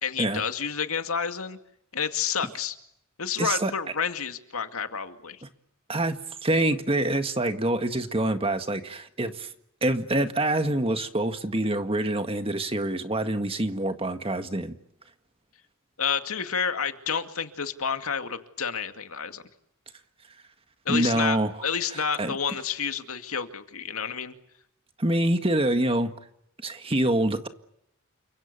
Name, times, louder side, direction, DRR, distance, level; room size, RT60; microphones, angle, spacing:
voice 1, 0.0-1.6 1.9-2.8 3.2-5.4 16.0-19.4 20.9-24.4, left 6 dB, 75° left, 7 dB, 2.3 m, -30 dB
voice 2, 3.4-3.7 5.9-9.5 9.8-14.8 20.9-21.5 21.9-22.3 25.0-26.1 26.6-27.5, right 1 dB, 25° right, 8 dB, 1.8 m, -26 dB
29.5 x 25.5 x 6.9 m, 0.74 s
head